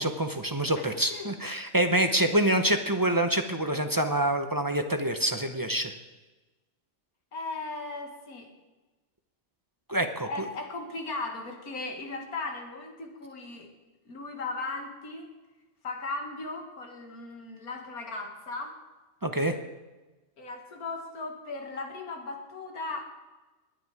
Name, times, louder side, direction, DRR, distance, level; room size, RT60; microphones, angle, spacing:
voice 1, 0.0-5.9 9.9-10.3 19.2-19.6, right 1 dB, 20° right, 7 dB, 0.6 m, -26 dB
voice 2, 0.6-1.3 7.3-8.5 10.2-13.7 14.1-15.3 15.8-18.8 20.4-23.0, left 3 dB, 80° left, 4 dB, 2.3 m, -37 dB
20.0 x 9.5 x 4.8 m, 1.2 s
omnidirectional pair, 1.5 m